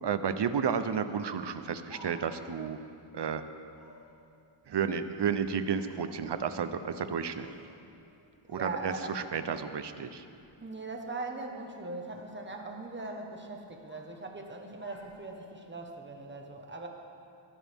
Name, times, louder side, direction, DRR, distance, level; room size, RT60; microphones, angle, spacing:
voice 1, 0.0-2.8 3.1-3.4 4.7-7.5 8.5-10.3, right 7 dB, 55° right, 10 dB, 0.8 m, -32 dB
Speech, 1.4-2.5 3.7-4.1 5.1-6.2 6.9-7.7 8.0-8.7 9.1-9.5 10.2-10.5 11.6-12.3 12.6-13.2 13.5-14.1 14.4-15.7, equal, 55° left, 2.7 m, -56 dB
voice 2, 8.5-9.2 10.6-16.9, right 3 dB, 20° right, 2 dB, 1.3 m, -40 dB
21.0 x 11.5 x 3.6 m, 2.6 s
wide cardioid pair, 105°, 49 cm